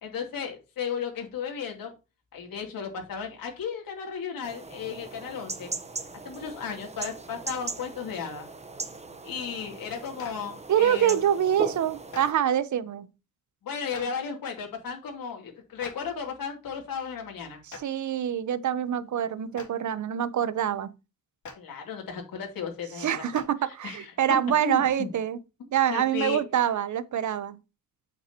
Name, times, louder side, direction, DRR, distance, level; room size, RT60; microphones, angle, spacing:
voice 1, 0.0-1.9 2.3-5.7 6.2-8.5 9.2-11.2 13.6-17.6 21.6-23.4 23.8-24.1 24.6-25.1 25.9-26.4, left 6 dB, 80° left, 3.2 m, -35 dB
sound 1, 4.4-12.3, right 3 dB, 20° right, 1.1 m, -39 dB
Clapping, 10.2-10.3 12.1-12.2 13.9-14.0 15.8-15.9 17.7-17.8 19.5-19.6 21.4-21.5 23.3-23.4, left 4 dB, 60° left, 3.1 m, -40 dB
voice 2, 10.7-13.1 17.7-20.9 23.0-25.4 25.7-27.6, right 10 dB, 60° right, 0.9 m, -25 dB
8.5 x 7.7 x 3.0 m
wide cardioid pair, 145°, 34 cm